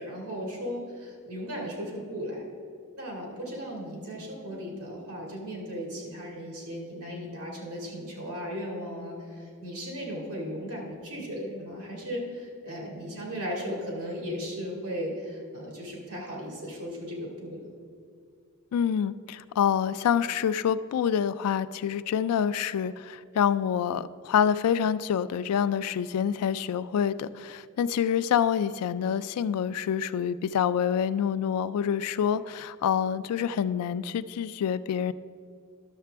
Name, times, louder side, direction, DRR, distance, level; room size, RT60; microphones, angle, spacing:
voice 1, 0.0-2.4 3.0-17.7, equal, 75° right, -2 dB, 2.2 m, -36 dB
voice 2, 18.7-35.1, left 8 dB, 80° left, 14 dB, 0.3 m, -27 dB
12.0 x 6.6 x 3.4 m, 2.2 s
head